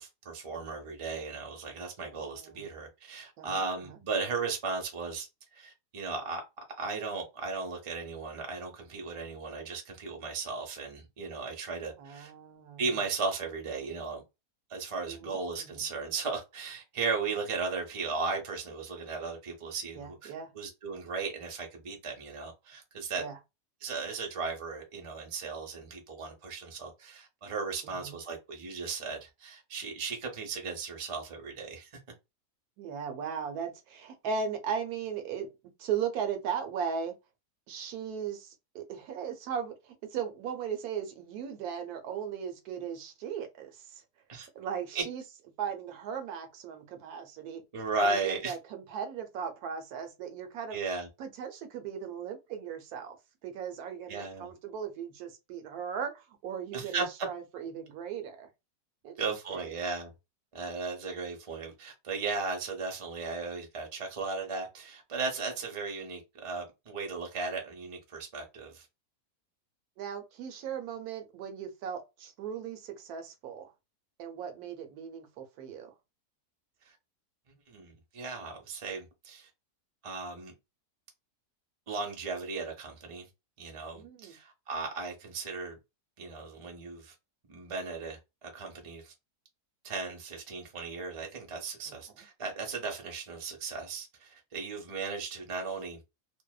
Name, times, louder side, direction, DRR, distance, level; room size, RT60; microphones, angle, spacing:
voice 1, 0.0-6.4 6.8-12.3 12.8-14.2 14.7-23.2 23.8-32.0 44.3-44.5 44.9-45.0 47.7-48.5 50.7-51.1 54.1-54.5 56.7-57.1 59.2-60.1 60.5-68.8 76.9-77.0 77.7-79.5 80.0-80.5 81.9-83.3 83.6-85.8 86.2-87.1 87.5-88.2 88.5-89.1 89.8-96.0, right 4 dB, 50° right, 0.4 m, -36 dB
voice 2, 2.0-2.7 3.4-3.9 12.0-12.8 15.1-15.8 19.9-20.5 23.2-23.4 27.8-28.2 32.8-35.5 35.8-37.1 37.7-44.0 44.5-45.2 45.6-47.6 48.0-50.8 51.2-53.2 53.4-58.5 59.0-59.2 59.5-59.7 70.0-73.7 74.2-75.9 83.9-84.4 91.9-92.0, right 7 dB, 75° right, 1.0 m, -37 dB
2.6 x 2.1 x 2.2 m
omnidirectional pair, 1.7 m